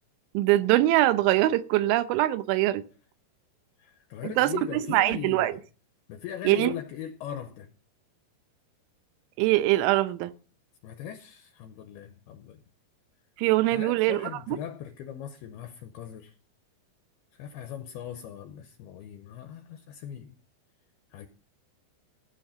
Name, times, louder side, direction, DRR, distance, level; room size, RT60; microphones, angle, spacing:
voice 1, 0.3-2.8 4.2-5.5 6.5-6.7 9.4-10.3 13.4-14.6, right 15 dB, 90° right, 3.2 m, -23 dB
voice 2, 3.8-5.6 6.1-7.7 10.8-12.6 13.7-16.3 17.3-20.4 21.1-21.3, left 9 dB, 80° left, 2.4 m, -40 dB
14.0 x 7.3 x 5.5 m
omnidirectional pair, 5.3 m